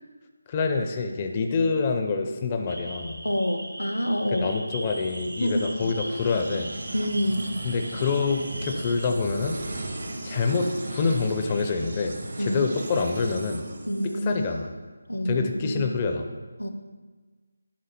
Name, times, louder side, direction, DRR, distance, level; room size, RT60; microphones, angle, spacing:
voice 1, 0.5-3.2 4.3-6.8 7.6-9.6 10.2-13.6 14.0-14.7 15.2-16.3, left 4 dB, 25° left, 4 dB, 0.4 m, -26 dB
sound 1, 2.7-9.1, right 1 dB, 85° right, 0.5 m, -40 dB
voice 2, 3.2-4.5 5.4-5.9 6.9-7.5 12.4-12.7 13.9-14.5 15.1-15.8 16.6-16.7, equal, 80° left, 7 dB, 0.7 m, -27 dB
sound 2, 4.9-14.6, right 2 dB, 60° right, 0.9 m, -37 dB
10.5 x 3.6 x 4.2 m, 1.4 s
figure-of-eight pair, 160°, 0 cm